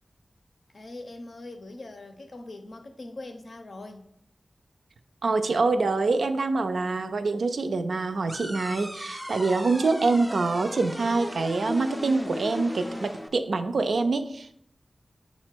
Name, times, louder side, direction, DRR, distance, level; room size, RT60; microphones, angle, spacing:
voice 1, 0.7-4.0, left 2 dB, 70° left, 5 dB, 0.6 m, -42 dB
voice 2, 5.2-14.5, right 3 dB, 85° right, 8 dB, 0.3 m, -25 dB
sound 1, 8.3-13.3, equal, ahead, 0.3 m, -36 dB
5.7 x 2.1 x 4.4 m, 0.70 s
wide cardioid pair, 60°, 0 cm